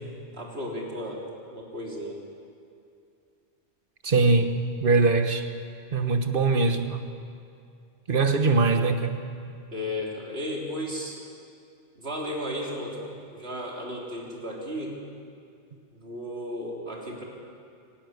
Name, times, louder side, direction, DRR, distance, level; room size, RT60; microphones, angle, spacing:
voice 1, 0.3-1.2 1.5-2.2 9.7-11.2 12.0-15.0 15.9-17.2, equal, 75° right, -2 dB, 3.8 m, -34 dB
voice 2, 4.0-5.5 5.9-7.0 8.1-9.2, right 3 dB, 55° right, 7 dB, 1.4 m, -22 dB
24.5 x 12.5 x 9.6 m, 2.5 s
omnidirectional pair, 1.1 m